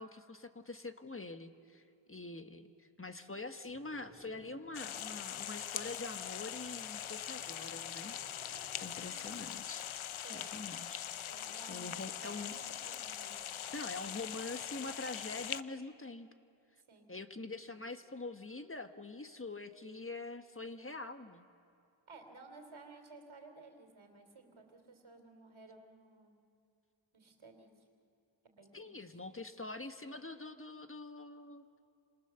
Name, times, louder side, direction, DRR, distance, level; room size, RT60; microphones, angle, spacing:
voice 1, 0.0-1.8 2.1-8.2 8.8-9.9 10.3-11.1 11.7-12.5 13.7-16.3 17.1-21.4 28.7-31.8, left 3 dB, 25° left, 8 dB, 1.4 m, -45 dB
sound 1, 3.7-9.6, right 2 dB, 30° right, 3.0 m, -60 dB
sound 2, 4.7-15.6, left 10 dB, 90° left, 0.7 m, -42 dB
voice 2, 10.2-10.6 11.3-13.4 16.9-17.1 22.1-26.3 27.1-27.7 28.4-29.2, right 3 dB, 80° right, 5 dB, 3.3 m, -55 dB
29.5 x 26.0 x 7.0 m, 2.4 s
cardioid pair, 55°, 47 cm